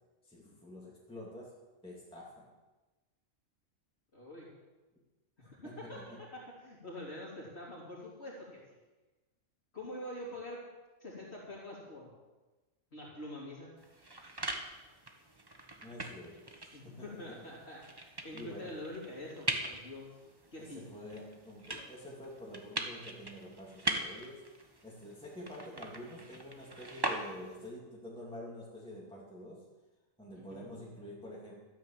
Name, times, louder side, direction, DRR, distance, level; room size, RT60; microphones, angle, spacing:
voice 1, 0.2-2.5 5.4-6.3 15.8-17.5 18.3-18.8 20.6-24.5 24.8-29.7 30.2-31.6, left 1 dB, 5° left, -5 dB, 2.7 m, -48 dB
voice 2, 4.1-4.5 5.4-6.0 6.3-8.6 9.7-10.6 11.0-12.1 12.9-13.7 16.7-20.1 20.5-20.9 30.3-30.7, left 1 dB, 50° left, -6 dB, 3.3 m, -45 dB
sound 1, 13.8-27.7, right 1 dB, 20° right, 1.2 m, -42 dB
13.5 x 9.5 x 7.5 m, 1.2 s
omnidirectional pair, 1.4 m